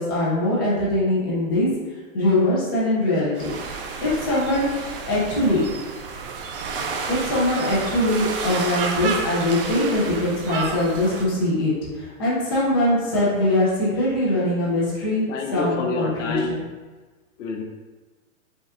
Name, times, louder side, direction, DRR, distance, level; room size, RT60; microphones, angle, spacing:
voice 1, 0.0-1.7 2.1-3.5 4.0-4.7 5.1-5.6 7.1-15.2 15.5-16.6, left 1 dB, 20° left, -6 dB, 0.4 m, -22 dB
sound 1, 3.4-11.3, right 4 dB, 45° right, 0.5 m, -31 dB
voice 2, 15.3-16.6 17.4-17.6, left 3 dB, 60° left, 1 dB, 0.6 m, -27 dB
5.2 x 2.4 x 3.5 m, 1.3 s
hypercardioid pair, 160°, 41 cm